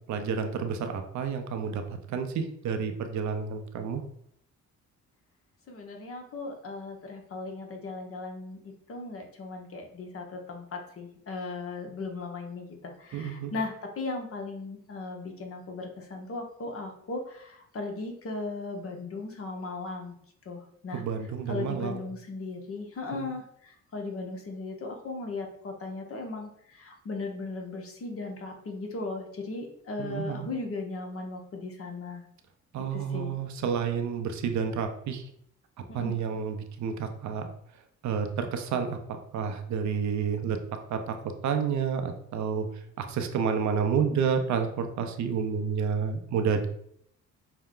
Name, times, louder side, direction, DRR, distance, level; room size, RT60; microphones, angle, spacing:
voice 1, 0.1-4.0 13.1-13.6 20.9-22.0 23.1-23.3 30.0-30.5 32.7-35.3 35.8-37.5 37.7-40.6 40.9-41.1 41.4-46.7, right 6 dB, 70° right, 6 dB, 0.7 m, -30 dB
voice 2, 5.7-20.2 20.4-21.0 21.5-32.2 32.9-33.3 35.9-36.1, left 3 dB, 50° left, 3 dB, 1.0 m, -37 dB
5.5 x 2.2 x 3.7 m, 0.68 s
cardioid pair, 90°, 30 cm